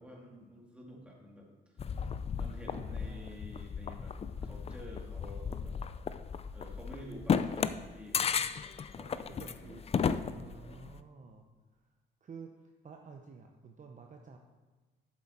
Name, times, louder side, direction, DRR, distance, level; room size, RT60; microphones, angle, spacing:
voice 1, 0.0-1.5 2.4-4.2 4.4-5.8 6.5-8.3 8.9-9.7 10.4-10.9, equal, 5° right, -2 dB, 2.1 m, -50 dB
sound 1, 1.8-11.0, left 6 dB, 30° left, 0.4 m, -35 dB
voice 2, 2.7-3.4 9.3-9.9 10.3-11.4 11.8-11.9 12.2-12.5 12.8-14.4, right 5 dB, 40° right, 3 dB, 0.7 m, -50 dB
7.6 x 7.3 x 4.3 m, 1.3 s
cardioid pair, 90°, 20 cm